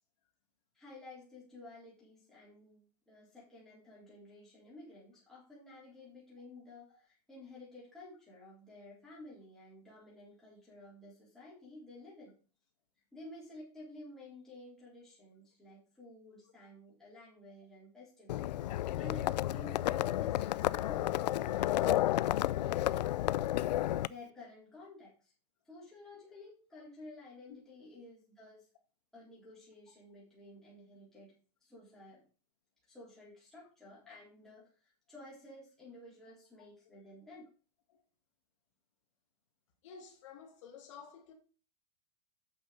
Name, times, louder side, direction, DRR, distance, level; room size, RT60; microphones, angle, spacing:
voice 1, 0.7-12.3 13.1-23.1 24.0-25.3 25.6-28.7 29.1-31.3 31.6-32.2 32.9-37.5, left 2 dB, ahead, 3.5 m, -53 dB
Livestock farm animals working animals, 18.3-24.1, left 14 dB, 90° left, 0.4 m, -31 dB
voice 2, 39.8-41.3, left 6 dB, 50° left, 2.3 m, -52 dB
8.5 x 6.0 x 4.9 m
supercardioid pair, 175°, 21 cm